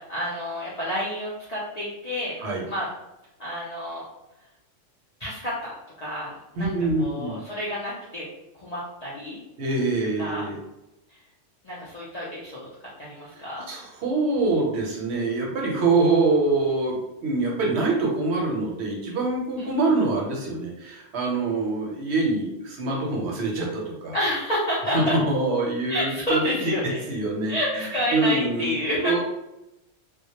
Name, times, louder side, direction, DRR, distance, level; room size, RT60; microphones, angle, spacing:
voice 1, 0.0-2.4 2.7-2.9 3.4-4.0 5.2-6.7 7.0-8.2 8.5-9.4 10.2-10.4 11.6-12.6 13.0-13.7 19.6-19.7 24.1-25.1 25.9-27.0 27.5-29.2, equal, 60° left, -7 dB, 0.4 m, -29 dB
voice 2, 6.6-7.4 9.6-10.6 13.3-13.4 13.7-24.1 24.9-26.4 27.1-28.7 29.0-29.2, right 3 dB, 70° right, -1 dB, 0.8 m, -25 dB
2.2 x 2.0 x 2.8 m, 0.92 s
omnidirectional pair, 1.3 m